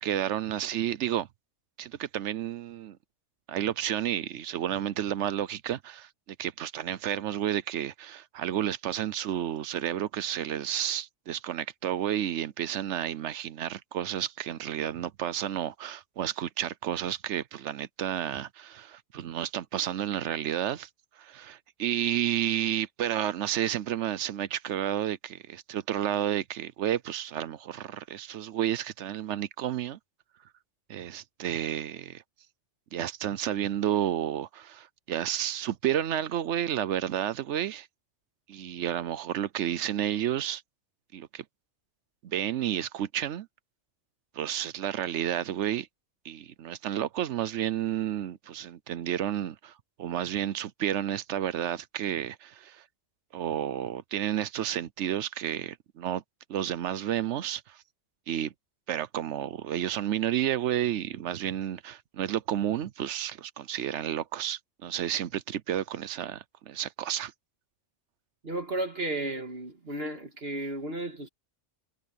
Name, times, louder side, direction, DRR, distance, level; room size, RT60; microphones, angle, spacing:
voice 1, 0.0-1.3 1.8-3.0 3.5-20.9 21.2-30.0 30.9-32.2 32.9-37.9 38.5-40.6 41.1-41.4 42.2-43.5 44.3-45.9 46.2-49.7 50.0-52.8 53.3-56.2 56.5-57.8 58.3-58.5 58.9-67.3, right 11 dB, 80° right, 1.0 m, -31 dB
voice 2, 68.4-71.3, right 2 dB, 55° right, 2.0 m, -33 dB
omnidirectional pair, 1.2 m